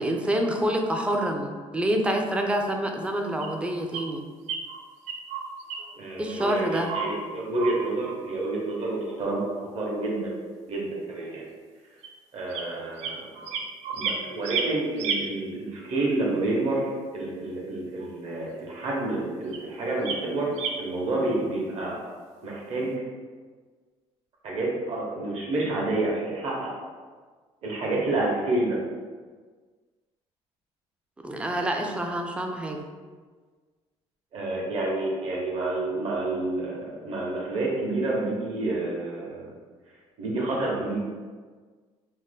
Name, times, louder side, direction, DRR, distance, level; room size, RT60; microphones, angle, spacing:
voice 1, 0.0-4.2 6.2-6.9 31.2-32.8, right 1 dB, 10° right, 2 dB, 0.3 m, -27 dB
sound 1, 3.4-3.5 3.9-4.1 4.5-4.8 5.1-5.9 6.3-6.6 6.9-7.1 7.6-7.8 8.0-8.2 10.0-10.1 12.0-12.1 12.5-12.6 13.0-14.2 14.4-15.2 18.0-18.1 19.5-19.6 20.0-20.2 20.6-20.7, right 6 dB, 75° right, 0.4 m, -31 dB
voice 2, 6.0-10.4 10.7-11.5 12.3-13.2 13.9-16.9 17.1-20.5 20.8-22.0 22.4-23.0 24.4-26.7 27.6-28.8 34.3-39.5 40.2-41.0, right 2 dB, 55° right, -3 dB, 0.9 m, -29 dB
2.7 x 2.1 x 3.4 m, 1.5 s
cardioid pair, 120°, 12 cm